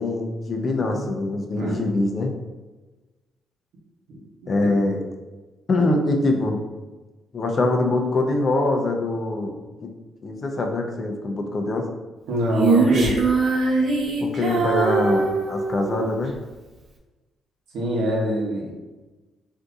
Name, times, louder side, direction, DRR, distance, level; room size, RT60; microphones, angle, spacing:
voice 1, 0.0-2.3 4.5-5.0 5.7-6.6 7.3-9.5 9.8-9.9 10.2-11.9 14.2-16.4, left 2 dB, 45° left, 3 dB, 0.5 m, -23 dB
voice 2, 12.3-13.1 17.7-18.7, equal, 90° right, -3 dB, 0.9 m, -24 dB
Female singing, 12.6-16.1, right 4 dB, 60° right, 0.6 m, -21 dB
3.5 x 2.7 x 2.4 m, 1.2 s
cardioid pair, 90°, 0 cm